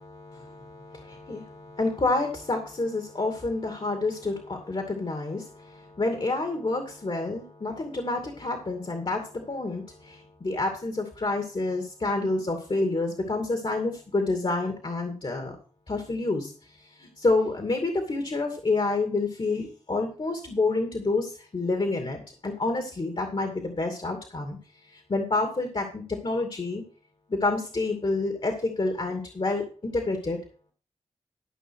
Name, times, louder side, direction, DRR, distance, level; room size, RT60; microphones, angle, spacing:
voice 1, 0.2-15.6 15.9-26.8 27.3-30.4, left 3 dB, 45° left, 5 dB, 2.5 m, -28 dB
13.5 x 5.7 x 6.4 m, 0.40 s
cardioid pair, 45°, 12 cm